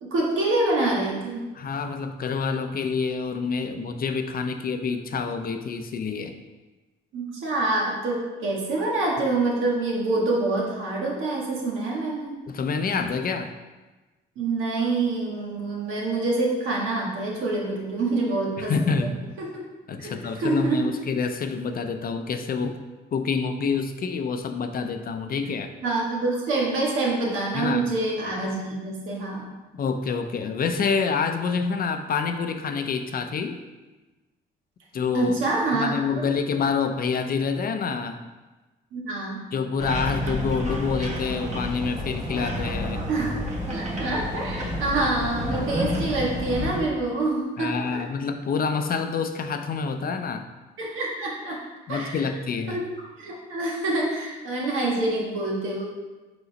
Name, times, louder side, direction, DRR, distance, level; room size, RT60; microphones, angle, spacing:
voice 1, 0.0-1.4 7.1-12.3 14.3-19.1 19.4-19.6 20.0-20.8 25.5-25.6 25.8-29.5 35.1-35.9 38.9-39.5 43.1-43.4 43.7-48.0 50.8-51.6 51.9-52.3 52.7-52.9 53.2-55.8, right 2 dB, 85° right, -3 dB, 1.6 m, -26 dB
voice 2, 1.5-6.4 12.5-13.5 18.6-19.2 19.9-22.8 23.1-25.7 27.5-27.9 29.7-33.6 34.9-35.3 35.7-38.2 39.5-43.0 47.6-50.5 51.9-52.8, left 5 dB, 50° left, 7 dB, 0.6 m, -27 dB
sound 1, 39.8-46.8, left 1 dB, 35° right, 1.4 m, -30 dB
5.0 x 3.8 x 5.3 m, 1.2 s
cardioid pair, 90°, 20 cm